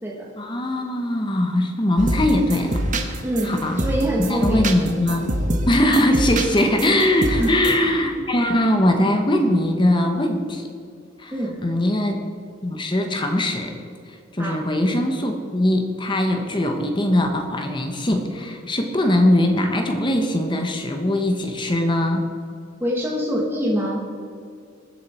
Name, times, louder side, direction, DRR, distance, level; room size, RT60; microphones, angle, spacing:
voice 1, 0.4-3.8 4.2-5.3 5.7-10.7 11.2-11.3 11.6-12.3 12.6-13.7 14.1-22.3, left 1 dB, 25° left, 4 dB, 1.1 m, -21 dB
sound 1, 2.0-7.8, right 1 dB, 40° right, 1.1 m, -26 dB
voice 2, 3.2-4.7 7.4-7.6 11.3-11.6 14.4-14.6 22.8-24.0, equal, 10° right, -3 dB, 1.5 m, -24 dB
20.5 x 7.4 x 4.4 m, 2.3 s
head